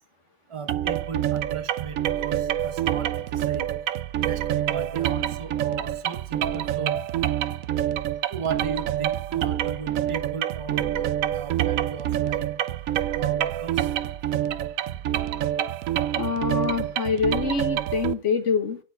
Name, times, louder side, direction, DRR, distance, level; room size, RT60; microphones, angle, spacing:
voice 1, 0.5-3.7 4.2-6.9 8.3-11.1 11.3-12.5 13.1-13.9, right 6 dB, 30° right, 0.5 m, -36 dB
sound 1, 0.7-18.1, right 11 dB, 75° right, 0.7 m, -27 dB
voice 2, 16.1-18.8, left 5 dB, 45° left, 1.5 m, -25 dB
11.5 x 4.5 x 5.9 m
omnidirectional pair, 2.0 m